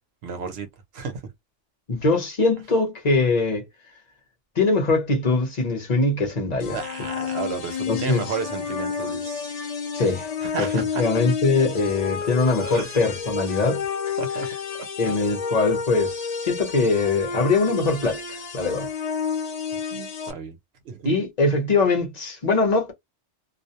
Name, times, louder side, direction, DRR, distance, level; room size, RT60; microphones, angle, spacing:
voice 1, 0.2-0.7 0.9-1.2 6.7-9.5 10.4-11.1 12.6-13.0 14.2-14.5 15.0-15.2 19.9-20.6 20.8-21.1, right 6 dB, 65° right, 0.9 m, -32 dB
voice 2, 1.9-3.6 4.6-6.8 7.9-8.3 9.9-10.3 10.6-10.7 11.0-14.2 15.0-18.9 21.0-22.9, left 3 dB, 40° left, 0.9 m, -22 dB
sound 1, 6.6-20.3, left 6 dB, 55° left, 0.4 m, -30 dB
2.4 x 2.0 x 2.7 m
omnidirectional pair, 1.2 m